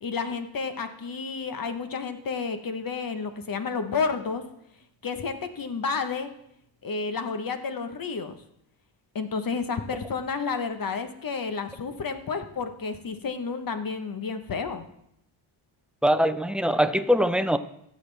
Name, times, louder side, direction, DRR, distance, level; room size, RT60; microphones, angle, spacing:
voice 1, 0.0-4.4 5.0-6.3 6.8-8.3 9.1-14.8, left 5 dB, 45° left, 8 dB, 1.1 m, -31 dB
voice 2, 16.0-17.6, equal, ahead, 10 dB, 0.5 m, -22 dB
16.0 x 7.5 x 3.4 m, 0.76 s
cardioid pair, 80°, 47 cm